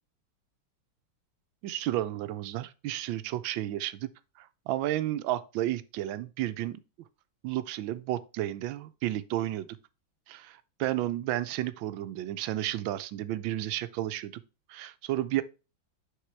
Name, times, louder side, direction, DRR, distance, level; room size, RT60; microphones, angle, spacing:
voice 1, 1.6-4.1 4.4-6.8 7.4-9.7 10.3-14.4 14.7-15.4, right 14 dB, 80° right, 1.3 m, -32 dB
6.6 x 5.5 x 3.2 m
omnidirectional pair, 2.1 m